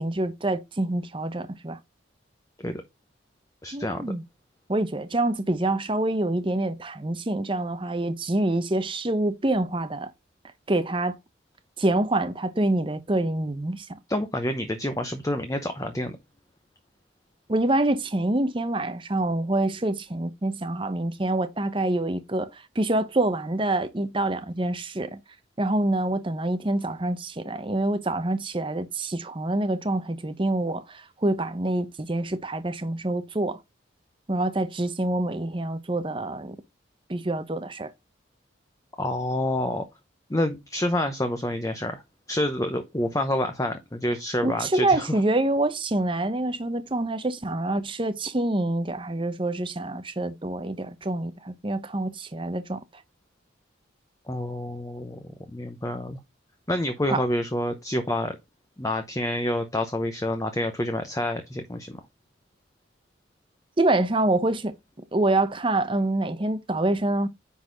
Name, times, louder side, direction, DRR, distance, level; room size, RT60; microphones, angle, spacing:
voice 1, 0.0-1.8 3.7-4.2 4.7-10.1 10.7-11.2 11.8-13.9 17.5-25.2 25.6-33.6 34.3-36.6 37.1-37.9 44.4-52.8 57.1-57.2 63.8-64.8 65.1-67.3, right 2 dB, 25° right, 0.7 m, -26 dB
voice 2, 3.6-4.1 14.1-16.2 39.0-39.8 40.3-42.0 42.3-45.1 54.3-55.2 55.5-56.2 56.7-58.4 58.8-62.0, left 1 dB, 15° left, 0.8 m, -28 dB
9.8 x 4.0 x 3.9 m
head